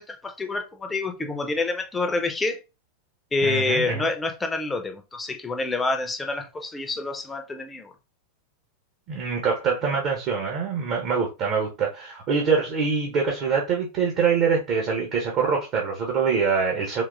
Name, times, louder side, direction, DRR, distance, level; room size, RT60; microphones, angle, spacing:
voice 1, 0.0-2.6 3.3-7.9, left 3 dB, 15° left, 0.6 m, -27 dB
voice 2, 3.4-4.1 9.1-17.0, right 5 dB, 40° right, 0.8 m, -24 dB
3.8 x 2.9 x 2.4 m
figure-of-eight pair, 90°, 0 cm